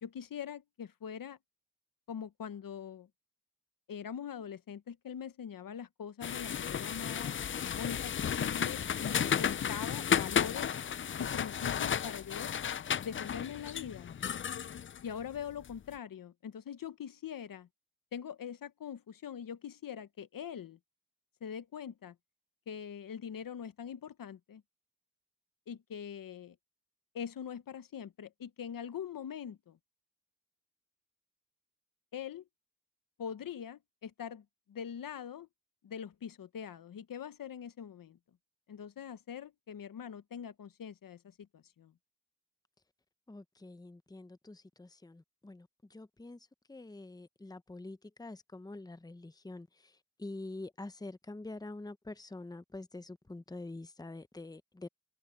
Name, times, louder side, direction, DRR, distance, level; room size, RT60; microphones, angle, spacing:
voice 1, 0.0-1.4 2.1-3.1 3.9-10.7 11.2-12.5 13.0-14.1 15.0-17.7 18.1-20.8 21.4-22.1 22.7-24.6 25.7-26.6 27.1-29.8 32.1-32.4 33.2-35.5 35.8-38.2 38.7-41.9, left 8 dB, 85° left, 1.0 m, -43 dB
sound 1, 6.2-15.8, left 8 dB, 40° left, 0.4 m, -33 dB
voice 2, 43.3-54.9, left 2 dB, 10° left, 0.8 m, -46 dB
cardioid pair, 70°, 33 cm